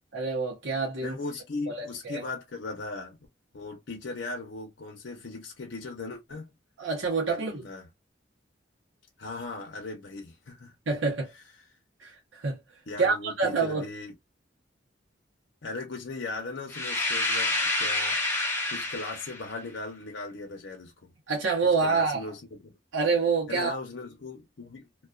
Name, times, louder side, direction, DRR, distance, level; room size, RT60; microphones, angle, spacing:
voice 1, 0.1-1.2 1.7-2.2 6.8-7.7 10.9-11.3 12.0-12.6 13.0-13.8 21.3-22.2 22.9-23.7, right 4 dB, 80° right, 0.8 m, -27 dB
voice 2, 1.0-3.2 3.5-6.5 7.3-7.9 9.2-10.8 12.9-14.1 15.6-18.2 18.7-21.1 21.6-22.7 23.5-24.9, left 3 dB, 70° left, 0.7 m, -38 dB
sound 1, 16.7-19.5, left 2 dB, 10° left, 0.6 m, -28 dB
2.3 x 2.2 x 2.3 m
head